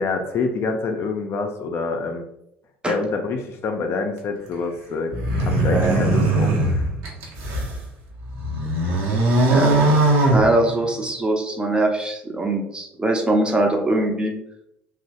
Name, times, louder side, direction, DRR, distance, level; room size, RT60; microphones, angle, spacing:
voice 1, 0.0-2.2 2.9-5.1 5.4-6.9, left 4 dB, 45° left, 4 dB, 0.4 m, -26 dB
sound 1, 5.1-7.8 8.2-11.1, right 2 dB, 65° right, 0.7 m, -20 dB
voice 2, 9.5-14.3, right 2 dB, 15° right, 2 dB, 0.5 m, -22 dB
2.9 x 2.0 x 2.8 m, 0.79 s
figure-of-eight pair, 60°, 6 cm